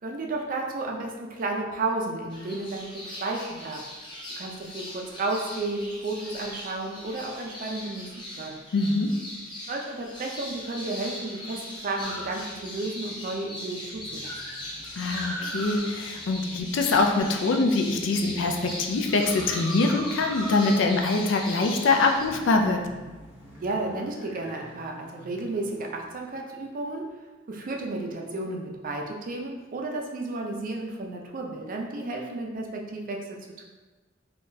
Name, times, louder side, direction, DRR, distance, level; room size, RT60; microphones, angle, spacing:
voice 1, 0.0-3.9 4.4-8.1 8.4-8.6 9.7-14.3 23.6-27.0 27.5-33.2 33.6-33.7, right 2 dB, 45° right, 1 dB, 0.4 m, -32 dB
sound 1, 2.3-22.3, left 1 dB, 25° left, 0.7 m, -40 dB
voice 2, 8.7-9.1 15.0-22.8, left 3 dB, 65° left, 4 dB, 0.4 m, -24 dB
sound 2, 12.0-13.0 13.4-13.5 13.8-17.3 17.8-26.3, equal, 10° right, 0.7 m, -42 dB
3.6 x 2.3 x 2.6 m, 1.3 s
head